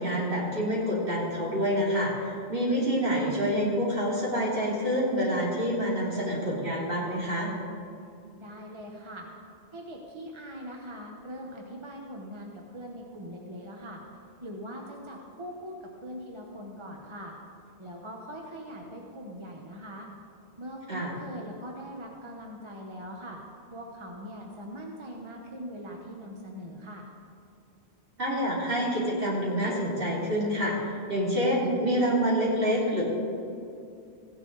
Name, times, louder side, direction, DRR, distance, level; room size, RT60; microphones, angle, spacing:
voice 1, 0.0-7.5 20.9-21.2 28.2-33.0, equal, 60° right, -6 dB, 3.2 m, -27 dB
voice 2, 8.4-9.3 9.7-14.0 14.4-15.8 16.0-17.4 17.8-20.1 20.6-23.4 23.7-27.1, equal, 30° right, 0 dB, 1.0 m, -41 dB
16.0 x 10.0 x 4.0 m, 2.5 s
omnidirectional pair, 1.1 m